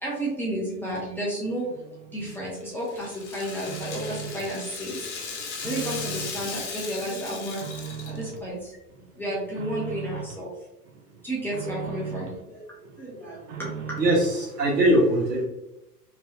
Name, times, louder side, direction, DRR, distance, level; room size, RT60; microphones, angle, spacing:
voice 1, 0.0-5.1 5.6-8.8 9.2-10.5 11.2-13.9, right 1 dB, 5° left, -7 dB, 0.4 m, -32 dB
sound 1, 1.7-2.6 3.0-4.6 4.9-6.5 6.9-8.5 8.9-10.5 10.8-12.4 12.8-14.4, right 7 dB, 40° right, 0.7 m, -39 dB
Rattle (instrument), 2.2-8.4, left 5 dB, 45° left, 0.8 m, -37 dB
voice 2, 14.0-15.4, right 1 dB, 75° right, -2 dB, 1.4 m, -21 dB
3.0 x 2.9 x 2.8 m, 0.92 s
figure-of-eight pair, 95°, 48 cm